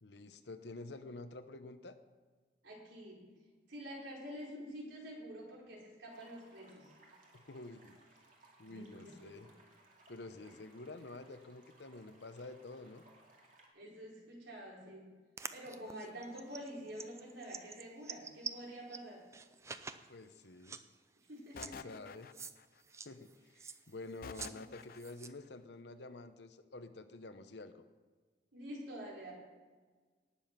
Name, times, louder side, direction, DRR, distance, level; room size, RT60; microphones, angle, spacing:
voice 1, 0.0-2.0 7.3-8.0 8.6-9.5 10.1-13.0 20.1-20.8 21.5-22.3 23.0-23.5 23.9-27.8, left 2 dB, 70° left, 10 dB, 0.9 m, -49 dB
voice 2, 2.6-3.3 3.7-6.9 8.7-9.3 10.4-10.5 13.7-15.1 15.5-19.3 21.3-21.9 24.4-24.6 28.5-29.3, equal, 85° right, -3 dB, 4.4 m, -48 dB
sound 1, 6.1-13.7, right 2 dB, 45° right, 2.5 m, -64 dB
sound 2, 15.4-19.0 19.3-20.1 20.4-20.5 20.6-20.8 21.5-21.7 22.3-22.5 22.8-24.5 24.8-25.3, right 5 dB, 15° right, 0.4 m, -46 dB
sound 3, 21.6-22.8 24.2-25.3, left 6 dB, 50° left, 0.4 m, -49 dB
18.5 x 7.1 x 5.8 m, 1.4 s
head